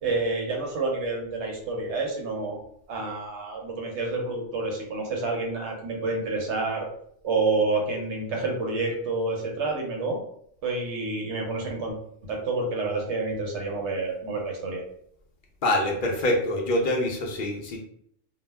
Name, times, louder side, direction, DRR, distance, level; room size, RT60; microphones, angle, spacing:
voice 1, 0.0-2.6 2.9-6.9 7.2-10.2 10.6-12.0 12.2-14.8, right 3 dB, 70° right, 1 dB, 0.9 m, -28 dB
voice 2, 15.6-17.8, left 1 dB, 60° left, 0 dB, 0.6 m, -25 dB
2.3 x 2.1 x 3.3 m, 0.67 s
omnidirectional pair, 1.3 m